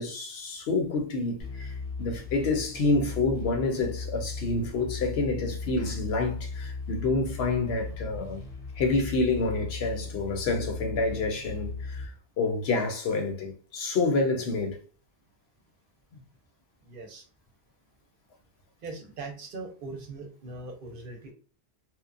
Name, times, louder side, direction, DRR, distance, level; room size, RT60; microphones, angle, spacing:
voice 1, 0.0-8.5 8.8-14.8, left 3 dB, 70° left, 0.9 m, -28 dB
sound 1, 1.4-12.1, left 4 dB, 40° left, 0.6 m, -37 dB
voice 2, 16.9-17.2 18.8-21.3, right 3 dB, 60° right, 0.8 m, -40 dB
2.8 x 2.1 x 2.5 m
omnidirectional pair, 1.1 m